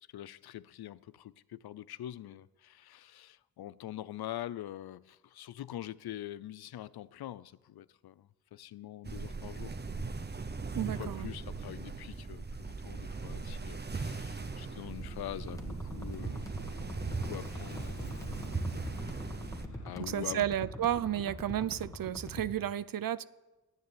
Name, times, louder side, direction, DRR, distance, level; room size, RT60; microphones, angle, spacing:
voice 1, 0.1-9.8 10.6-16.5 17.0-18.2 18.9-19.2 19.8-20.4, left 13 dB, 85° left, 0.5 m, -44 dB
sound 1, 9.0-19.7, right 4 dB, 30° right, 0.9 m, -39 dB
voice 2, 10.7-11.3 20.0-23.2, right 11 dB, 65° right, 0.6 m, -32 dB
Aircraft, 13.0-21.9, left 4 dB, 50° left, 1.7 m, -54 dB
sound 2, 15.5-22.5, left 1 dB, 10° left, 1.7 m, -44 dB
10.5 x 9.6 x 9.8 m
wide cardioid pair, 85°, 37 cm